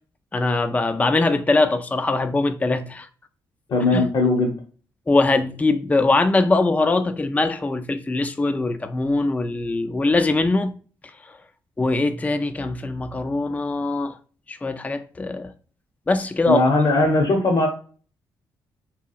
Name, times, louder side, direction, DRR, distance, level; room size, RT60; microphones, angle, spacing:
voice 1, 0.3-3.1 3.9-4.1 5.1-10.7 11.2-11.4 11.8-14.2 14.5-15.5 16.1-16.7, left 2 dB, 15° left, 0.3 m, -22 dB
voice 2, 3.7-4.5 16.5-17.7, left 2 dB, 55° left, 0.8 m, -19 dB
2.8 x 2.2 x 2.4 m
supercardioid pair, 50°, 9 cm